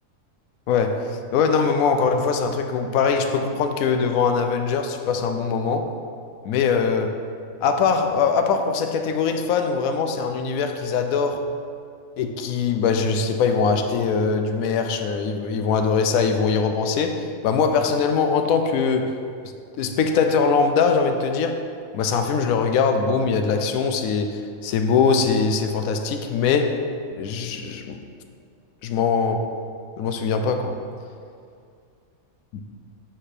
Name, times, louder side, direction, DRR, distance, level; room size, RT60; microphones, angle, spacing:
voice 1, 0.7-5.9 6.4-7.2 7.6-11.4 12.2-19.1 19.8-21.6 21.9-26.8 27.2-28.0 28.8-29.4 30.0-30.7, left 5 dB, 80° left, 6 dB, 1.0 m, -22 dB
7.7 x 4.3 x 4.9 m, 2.3 s
omnidirectional pair, 1.4 m